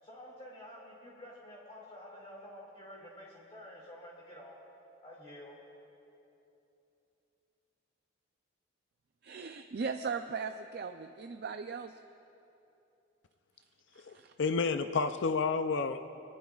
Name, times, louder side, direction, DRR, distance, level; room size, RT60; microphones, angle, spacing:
voice 1, 0.0-4.6 5.0-5.6, left 1 dB, 30° left, -5 dB, 2.3 m, -50 dB
voice 2, 9.2-12.0 13.9-14.3, right 5 dB, 50° right, 7 dB, 0.4 m, -38 dB
voice 3, 14.0-16.1, left 4 dB, 60° left, 9 dB, 0.5 m, -31 dB
23.0 x 18.5 x 2.4 m, 2.9 s
head